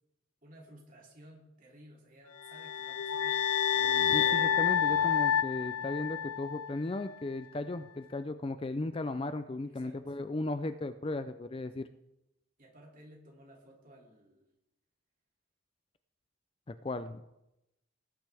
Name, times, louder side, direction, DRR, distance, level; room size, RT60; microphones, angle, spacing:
voice 1, 0.4-3.4 9.6-10.2 12.6-14.5, right 1 dB, 40° right, -2 dB, 2.7 m, -56 dB
sound 1, 2.4-6.7, left 8 dB, 85° left, 0.4 m, -29 dB
sound 2, 3.6-7.3, right 4 dB, 75° right, 0.5 m, -48 dB
voice 2, 4.1-11.9 16.8-17.2, left 2 dB, 25° left, 11 dB, 0.4 m, -36 dB
18.5 x 9.2 x 3.5 m, 0.90 s
head